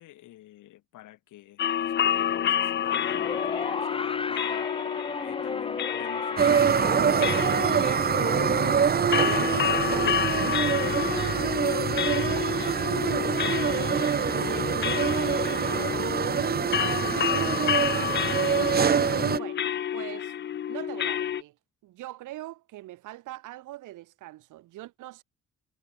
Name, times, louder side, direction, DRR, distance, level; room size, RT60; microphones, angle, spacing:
voice 1, 0.0-4.9 5.2-7.8 8.4-12.9 13.2-13.9 14.4-18.7, left 15 dB, 85° left, 3.9 m, -47 dB
sound 1, 1.6-21.4, left 10 dB, 35° left, 0.4 m, -30 dB
sound 2, 2.8-13.2 14.2-14.3, left 3 dB, 20° left, 1.0 m, -37 dB
sound 3, 6.4-19.4, right 7 dB, 30° right, 0.7 m, -25 dB
voice 2, 19.3-20.3 20.7-21.6 21.8-25.2, right 16 dB, 90° right, 2.8 m, -42 dB
cardioid pair, 90°, 30 cm